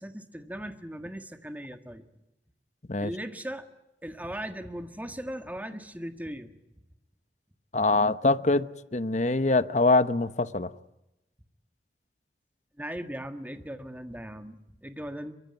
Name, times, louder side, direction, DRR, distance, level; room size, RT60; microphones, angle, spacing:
voice 1, 0.0-2.0 3.0-3.7 4.0-6.5 12.8-15.3, equal, 10° right, 7 dB, 1.7 m, -38 dB
voice 2, 7.7-10.7, left 3 dB, 40° left, 14 dB, 0.9 m, -24 dB
23.5 x 23.5 x 9.5 m, 0.90 s
head